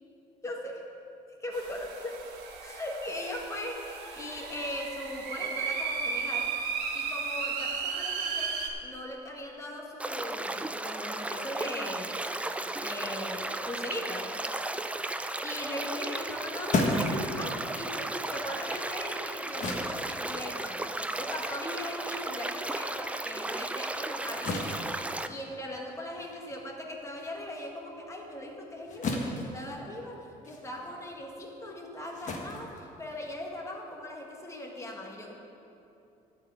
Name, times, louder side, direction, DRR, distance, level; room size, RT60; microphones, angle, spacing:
voice 1, 0.4-0.9 1.4-2.2 2.6-6.5 6.9-12.1 12.8-14.3 15.4-20.8 21.1-24.9 25.3-30.2 30.4-35.4, left 1 dB, 15° left, 0 dB, 1.7 m, -39 dB
sound 1, 1.5-8.7, right 5 dB, 85° right, 1.3 m, -34 dB
sound 2, 10.0-25.3, right 2 dB, 5° right, 0.4 m, -35 dB
sound 3, 16.2-23.0 23.3-33.6, left 2 dB, 45° left, 1.5 m, -36 dB
11.5 x 4.9 x 8.5 m, 2.8 s
cardioid pair, 110°, 17 cm